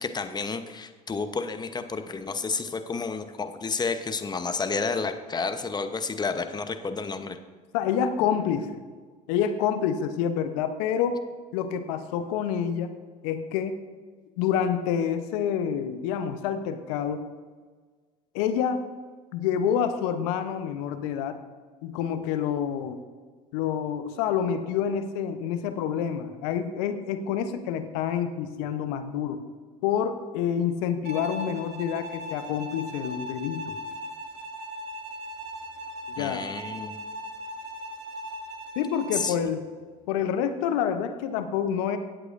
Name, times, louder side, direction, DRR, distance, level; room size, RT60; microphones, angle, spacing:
voice 1, 0.0-7.4 36.2-37.0 39.1-39.3, left 4 dB, 20° left, 8 dB, 0.9 m, -31 dB
voice 2, 7.7-8.8 9.3-11.2 11.5-12.9 13.2-13.8 14.4-17.2 18.3-18.8 19.3-21.4 21.8-23.0 23.5-29.4 29.8-33.7 36.2-36.4 38.8-39.6 40.1-42.0, left 8 dB, 70° left, 9 dB, 0.9 m, -27 dB
Bowed string instrument, 31.0-39.4, equal, 55° right, 1.5 m, -38 dB
17.5 x 8.0 x 2.6 m, 1.5 s
hypercardioid pair, 75°, 20 cm